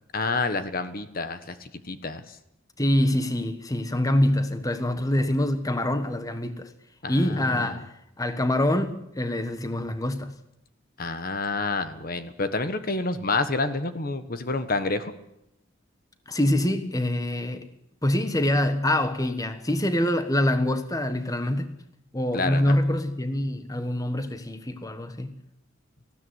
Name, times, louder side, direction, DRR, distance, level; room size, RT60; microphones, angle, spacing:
voice 1, 0.1-2.4 7.0-7.8 11.0-15.1 22.3-22.8, left 3 dB, 45° left, 1.4 m, -29 dB
voice 2, 2.8-6.7 7.1-7.9 8.2-10.4 16.3-17.7 18.0-21.7 22.1-25.4, left 1 dB, 15° left, 1.3 m, -25 dB
19.5 x 15.5 x 9.6 m
head